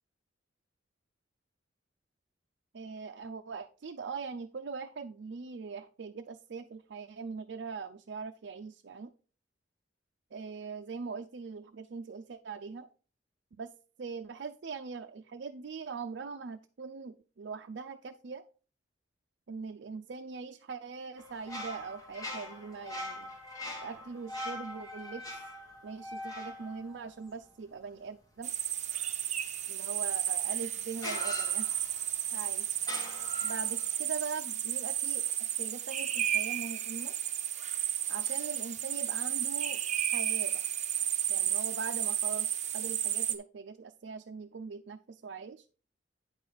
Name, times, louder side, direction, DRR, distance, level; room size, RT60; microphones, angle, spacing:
voice 1, 2.7-9.1 10.3-12.9 13.5-13.7 14.0-18.4 19.5-23.3 23.8-25.2 25.8-28.5 29.7-31.7 32.3-32.8 33.4-37.2 38.1-39.8 40.1-40.6 41.3-45.6, right 5 dB, 65° right, 5 dB, 0.5 m, -41 dB
sound 1, 21.2-27.8 30.1-30.2 31.0-32.2 32.8-33.9, left 1 dB, 20° left, 2.0 m, -42 dB
sound 2, 28.4-43.4, right 10 dB, 40° right, 0.7 m, -33 dB
9.1 x 6.1 x 3.9 m, 0.37 s
head